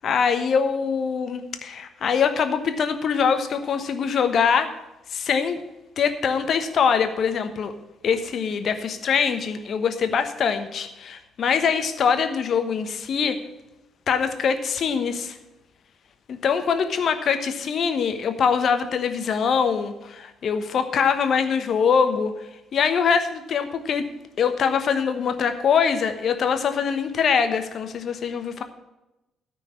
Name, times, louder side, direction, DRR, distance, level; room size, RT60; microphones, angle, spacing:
voice 1, 0.0-4.7 5.1-5.6 6.0-7.7 8.0-13.4 14.1-15.4 16.3-22.3 22.7-24.0 24.4-28.6, left 6 dB, 55° left, 8 dB, 1.1 m, -23 dB
13.0 x 4.5 x 8.4 m, 0.95 s
hypercardioid pair, 45°, 0 cm